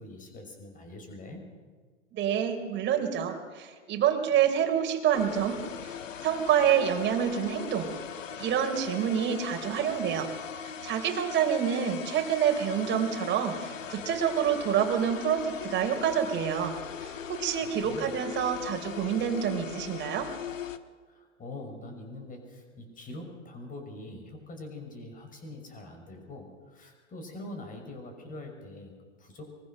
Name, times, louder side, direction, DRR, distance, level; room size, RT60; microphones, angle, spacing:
voice 1, 0.0-1.4 17.2-18.2 21.1-29.5, left 2 dB, 20° left, 4 dB, 5.8 m, -44 dB
voice 2, 2.1-5.6 5.8-5.9 6.2-7.9 8.4-10.3 10.8-16.8 17.0-20.3, right 8 dB, 30° right, 4 dB, 3.8 m, -27 dB
sound 1, 5.1-20.8, left 8 dB, 80° left, 1.5 m, -40 dB
24.0 x 21.5 x 6.6 m, 1.6 s
hypercardioid pair, 115°, 38 cm